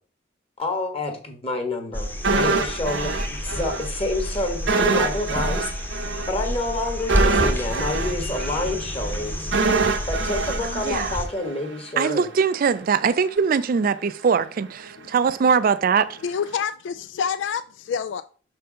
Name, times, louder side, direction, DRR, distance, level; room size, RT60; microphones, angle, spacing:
voice 1, 0.6-5.7 6.3-9.5 10.1-12.3, left 2 dB, 30° left, 1.3 m, -28 dB
sound 1, 1.9-11.3 13.4-13.5, equal, 10° left, 0.9 m, -29 dB
sound 2, 2.2-3.9 4.1-4.3 4.7-11.7 12.0-12.2, right 4 dB, 70° right, 0.9 m, -25 dB
voice 2, 10.6-11.2 12.0-16.1, right 6 dB, 50° right, 0.3 m, -21 dB
voice 3, 16.2-18.2, left 7 dB, 70° left, 0.3 m, -27 dB
6.3 x 4.6 x 4.9 m
head